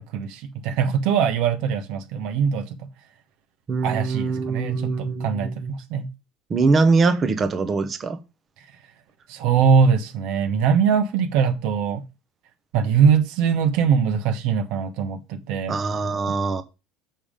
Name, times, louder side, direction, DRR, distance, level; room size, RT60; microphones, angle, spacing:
voice 1, 0.0-2.9 3.8-6.1 9.3-12.0 12.7-15.8, right 6 dB, 65° right, 1.1 m, -22 dB
voice 2, 3.7-5.7 6.5-8.2 15.7-16.6, right 4 dB, 25° right, 0.9 m, -22 dB
7.1 x 5.5 x 5.0 m
cardioid pair, 160°, 0 cm